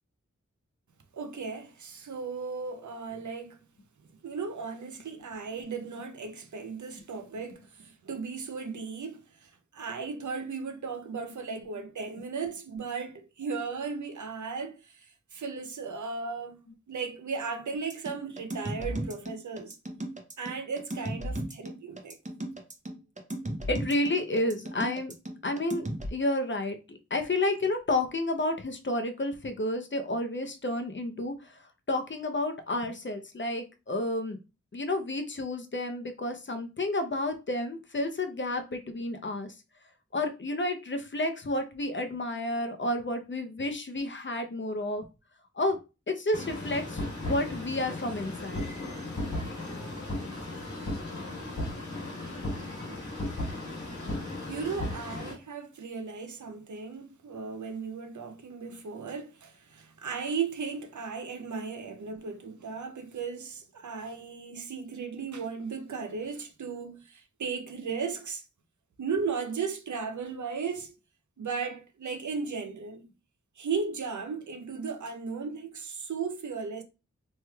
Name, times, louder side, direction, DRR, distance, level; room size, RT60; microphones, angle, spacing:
voice 1, 1.1-3.6 4.2-19.8 20.4-22.2 54.5-68.5 69.0-71.0 71.4-73.1 73.6-76.8, right 5 dB, 75° right, 0.6 m, -36 dB
sound 1, 17.9-26.1, right 1 dB, 25° right, 0.6 m, -35 dB
voice 2, 23.7-25.1 25.4-25.8 26.1-31.3 31.9-34.4 34.7-39.5 40.1-45.0 45.6-45.8 46.1-48.6, left 1 dB, 40° left, 0.6 m, -30 dB
sound 2, 46.3-55.3, left 1 dB, 80° left, 1.3 m, -36 dB
3.2 x 3.1 x 2.3 m
wide cardioid pair, 55°, 29 cm